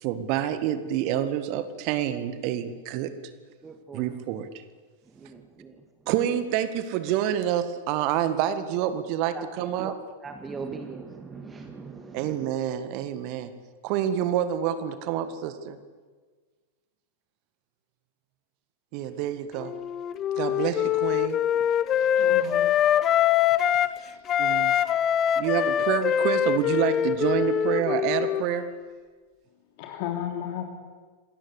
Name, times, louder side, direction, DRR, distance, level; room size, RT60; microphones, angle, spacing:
voice 1, 0.0-3.1 3.9-4.5 6.1-9.9 12.1-13.5 13.8-15.8 18.9-19.7 20.4-21.4 24.4-24.7 25.4-28.6, right 10 dB, 45° right, 11 dB, 1.8 m, -27 dB
voice 2, 3.6-4.0 5.2-5.3 5.6-5.7 9.4-9.9 10.2-12.2, right 4 dB, 15° right, 6 dB, 2.0 m, -39 dB
Wind instrument woodwind instrument, 19.6-24.0 24.3-28.8, left 10 dB, 30° left, 1.1 m, -24 dB
voice 3, 21.7-22.7 23.9-24.3 24.6-25.0 25.3-25.4 29.8-30.7, left 10 dB, 45° left, 3 dB, 3.2 m, -36 dB
27.0 x 19.5 x 8.4 m, 1.4 s
figure-of-eight pair, 90°, 0 cm